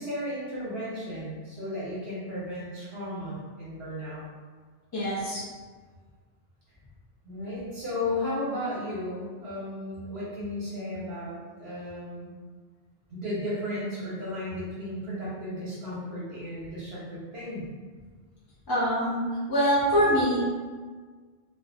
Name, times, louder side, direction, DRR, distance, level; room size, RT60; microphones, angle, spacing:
voice 1, 0.0-4.3 7.2-12.3 13.1-17.7, left 1 dB, 75° right, -9 dB, 1.0 m, -34 dB
voice 2, 4.9-5.4 18.7-19.2 19.5-20.4, equal, 30° left, -11 dB, 0.4 m, -24 dB
2.4 x 2.0 x 2.6 m, 1.5 s
omnidirectional pair, 1.0 m